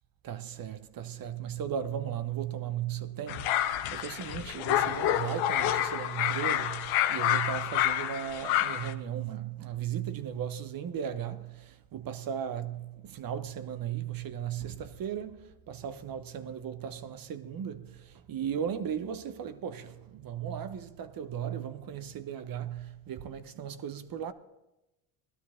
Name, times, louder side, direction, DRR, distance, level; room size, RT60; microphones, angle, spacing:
voice 1, 0.2-24.3, right 9 dB, 45° right, 1.0 m, -36 dB
sound 1, 3.3-8.9, left 12 dB, 80° left, 1.0 m, -28 dB
17.5 x 12.5 x 3.7 m
supercardioid pair, 85°, 46 cm